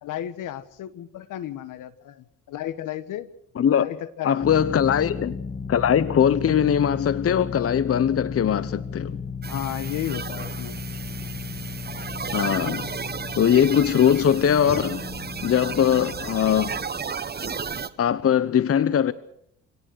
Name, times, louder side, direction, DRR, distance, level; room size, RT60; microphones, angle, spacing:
voice 1, 0.0-3.3 3.7-4.8 9.5-10.8, left 12 dB, 70° left, 1.5 m, -33 dB
voice 2, 3.6-3.9 4.2-5.4 5.7-9.2 12.3-12.9 13.4-15.0 15.4-16.8 18.0-19.1, left 9 dB, 45° left, 1.0 m, -21 dB
sound 1, 4.4-16.8, left 5 dB, 25° left, 2.8 m, -35 dB
sound 2, 9.4-17.9, right 5 dB, 30° right, 1.4 m, -34 dB
26.5 x 18.0 x 6.5 m
supercardioid pair, 65°, 33 cm